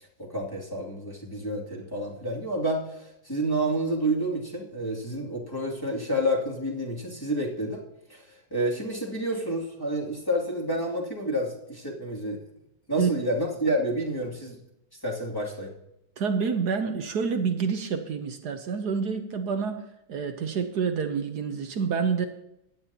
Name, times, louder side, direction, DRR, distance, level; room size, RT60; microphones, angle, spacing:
voice 1, 0.2-7.8 8.1-8.2 8.5-12.4 12.9-14.6 15.0-15.7, right 1 dB, 10° left, -4 dB, 2.4 m, -29 dB
voice 2, 16.2-19.8 20.1-22.3, right 6 dB, 60° right, 7 dB, 1.2 m, -28 dB
17.0 x 10.5 x 2.9 m, 0.84 s
omnidirectional pair, 2.4 m